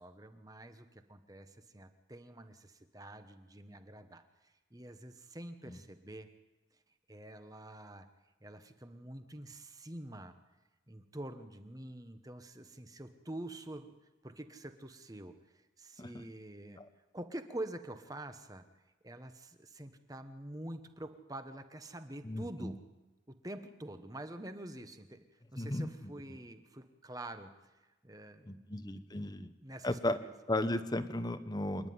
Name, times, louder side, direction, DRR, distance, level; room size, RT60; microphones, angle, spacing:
voice 1, 0.0-4.2 4.7-6.3 7.1-8.1 8.4-10.3 10.9-13.9 14.2-15.3 15.8-16.8 17.1-18.6 19.0-22.8 23.3-25.2 25.5-27.5 28.0-28.6 29.1-29.3 29.6-30.3, right 1 dB, 20° right, 8 dB, 1.2 m, -46 dB
voice 2, 22.2-22.7 25.6-26.4 28.4-29.5 29.8-30.2 30.5-31.9, left 1 dB, 20° left, 11 dB, 1.0 m, -35 dB
27.0 x 10.5 x 9.5 m, 1.1 s
head